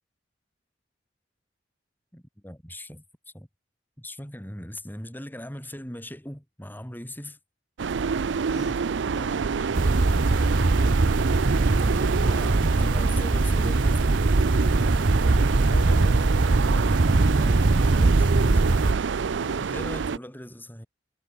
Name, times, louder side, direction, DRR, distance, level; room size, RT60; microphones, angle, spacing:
voice 1, 2.1-3.0 3.3-3.5 4.0-7.4 11.8-14.1 17.2-18.9 19.6-20.9, left 1 dB, 10° left, 5.2 m, -40 dB
sound 1, 7.8-20.2, right 5 dB, 85° right, 0.5 m, -27 dB
voice 2, 8.5-8.8 9.1-10.8 15.7-16.2 16.6-16.9 19.4-19.7, left 1 dB, 75° left, 6.4 m, -42 dB
sound 2, 9.7-18.9, right 2 dB, 50° right, 0.7 m, -22 dB
head